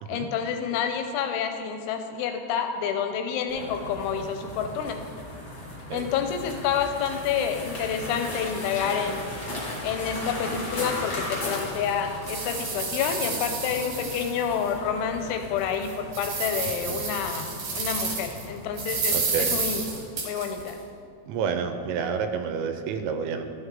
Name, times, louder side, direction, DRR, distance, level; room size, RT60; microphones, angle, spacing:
voice 1, 0.1-5.0 5.9-9.3 9.8-17.5 17.7-19.8 20.2-20.8, left 7 dB, 80° left, 5 dB, 2.8 m, -28 dB
sound 1, 3.5-20.0, left 1 dB, 45° left, 1.5 m, -37 dB
sound 2, 10.6-10.7 11.2-11.3 11.9-14.7 15.1-15.2 15.7-18.4 18.8-20.7, right 4 dB, 60° right, 2.7 m, -31 dB
voice 2, 19.1-19.5 21.3-23.4, right 6 dB, 85° right, 7 dB, 3.2 m, -29 dB
13.5 x 8.8 x 3.7 m, 2.4 s
omnidirectional pair, 5.8 m